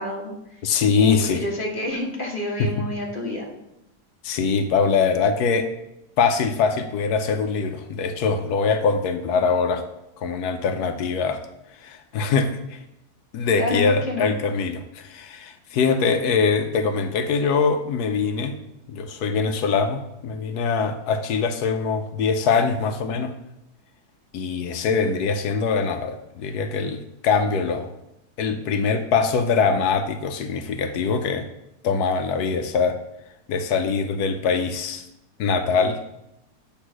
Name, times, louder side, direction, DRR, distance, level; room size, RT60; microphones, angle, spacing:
voice 1, 0.0-0.6 1.0-3.5 13.6-14.3, left 2 dB, 35° left, 0 dB, 1.5 m, -29 dB
voice 2, 0.6-1.4 2.6-2.7 4.2-5.7 6.2-9.9 10.2-11.4 11.8-12.8 13.3-18.5 18.9-23.3 24.3-27.9 28.4-31.5 31.8-33.0 33.5-35.1 35.4-36.0, left 5 dB, 80° left, 8 dB, 1.2 m, -23 dB
8.0 x 3.6 x 6.1 m, 0.86 s
omnidirectional pair, 1.7 m